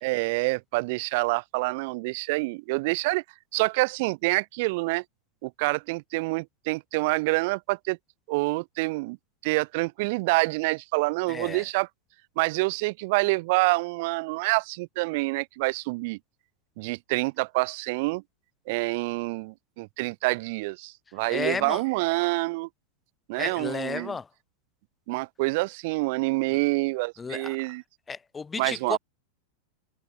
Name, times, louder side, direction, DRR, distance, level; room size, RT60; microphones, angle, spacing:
voice 1, 0.0-3.2 3.5-5.0 5.4-8.0 8.3-9.2 9.4-11.9 12.4-16.2 16.8-18.2 18.7-22.7 23.3-24.2 25.1-27.8 28.6-29.0, right 25 dB, 50° right, 0.3 m, -27 dB
voice 2, 11.3-11.6 21.3-21.8 23.4-24.3 27.2-27.6 28.1-29.0, left 5 dB, 15° left, 0.5 m, -33 dB
figure-of-eight pair, 90°, 0 cm